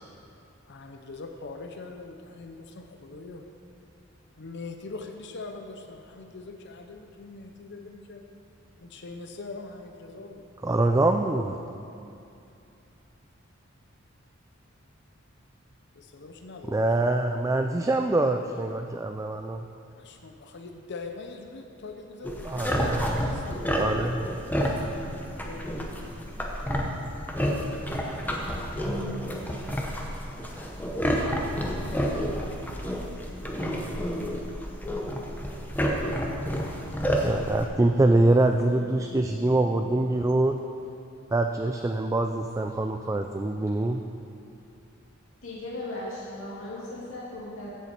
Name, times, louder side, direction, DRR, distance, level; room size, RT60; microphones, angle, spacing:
voice 1, 0.7-3.4 4.4-8.2 8.8-10.4 16.0-16.9 20.0-24.2 25.0-26.2 36.9-38.2, left 3 dB, 55° left, 4 dB, 0.6 m, -43 dB
voice 2, 10.6-11.6 16.7-19.6 22.4-23.3 23.7-24.3 37.2-40.6 41.3-44.0, right 2 dB, 15° right, 5 dB, 0.3 m, -24 dB
sound 1, 22.2-37.6, equal, 10° left, 0.9 m, -30 dB
voice 3, 45.4-47.7, left 1 dB, 75° left, -6 dB, 2.4 m, -37 dB
15.0 x 7.1 x 4.4 m, 2.6 s
head